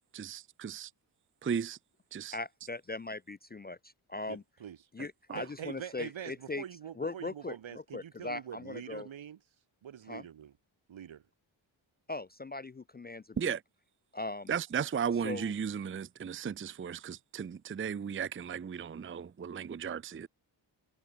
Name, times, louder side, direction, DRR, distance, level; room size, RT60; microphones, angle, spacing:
voice 1, 0.1-0.9 1.4-1.8 2.1-2.4 5.3-5.4 13.4-13.6 14.5-20.3, right 7 dB, 25° right, 0.5 m, -35 dB
voice 2, 2.3-4.4 4.9-6.6 7.0-9.1 10.1-10.2 12.1-13.5 14.1-14.5 15.2-15.5, left 3 dB, 20° left, 0.4 m, -40 dB
voice 3, 4.3-4.8 5.3-9.4 9.8-10.5 10.9-11.2, right 9 dB, 75° right, 2.4 m, -44 dB
wide cardioid pair, 150°, 47 cm